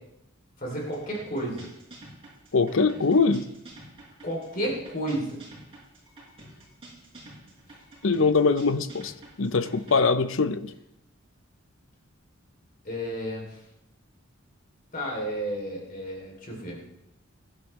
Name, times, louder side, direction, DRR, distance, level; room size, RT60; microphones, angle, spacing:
voice 1, 0.6-1.7 4.2-5.4 12.8-13.6 14.9-16.8, right 1 dB, 40° left, 3.0 m, -32 dB
sound 1, 0.7-10.0, right 1 dB, 25° right, 6.7 m, -48 dB
voice 2, 2.5-3.4 8.0-9.1 9.4-10.7, left 4 dB, 70° left, 0.7 m, -22 dB
22.5 x 11.5 x 3.2 m
head